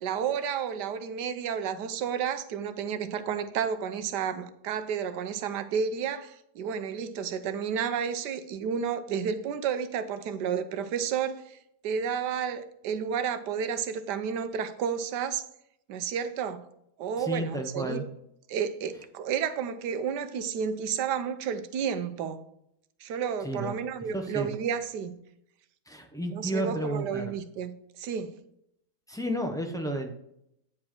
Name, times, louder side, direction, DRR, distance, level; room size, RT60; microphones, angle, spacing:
voice 1, 0.0-11.6 11.8-15.4 15.9-16.6 17.0-18.1 18.5-22.4 23.0-25.2 26.3-28.4, right 7 dB, 85° right, 1.3 m, -31 dB
voice 2, 17.2-18.0 23.4-23.7 24.1-24.5 25.9-27.3 29.1-30.1, right 1 dB, 5° left, 0.5 m, -32 dB
9.5 x 4.8 x 4.4 m
omnidirectional pair, 1.8 m